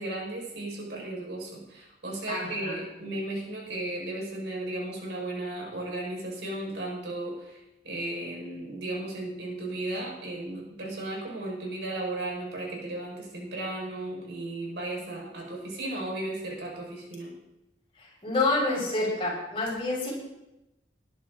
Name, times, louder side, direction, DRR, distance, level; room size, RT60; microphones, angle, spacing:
voice 1, 0.0-17.4, right 2 dB, 80° right, -1 dB, 5.2 m, -35 dB
voice 2, 2.3-2.8 18.0-20.1, left 2 dB, 30° left, -4 dB, 6.5 m, -28 dB
19.5 x 11.0 x 3.9 m, 0.94 s
head